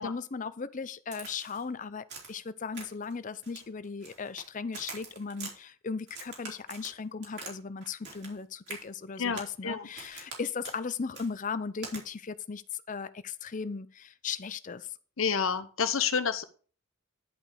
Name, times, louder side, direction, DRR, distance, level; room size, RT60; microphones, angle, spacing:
voice 1, 0.0-14.9, left 5 dB, 35° left, 0.5 m, -37 dB
Crack, 1.1-1.6 2.1-2.4 2.7-3.1 3.4-4.5 4.7-5.5 6.1-7.6 7.8-8.4 8.7-8.8 9.3-9.6 10.0-10.4 10.6-10.8 11.1-11.3 11.8-12.0, right 4 dB, 50° right, 3.4 m, -44 dB
voice 2, 9.2-9.9 15.2-16.4, left 6 dB, 65° left, 0.9 m, -29 dB
11.0 x 5.3 x 4.9 m
head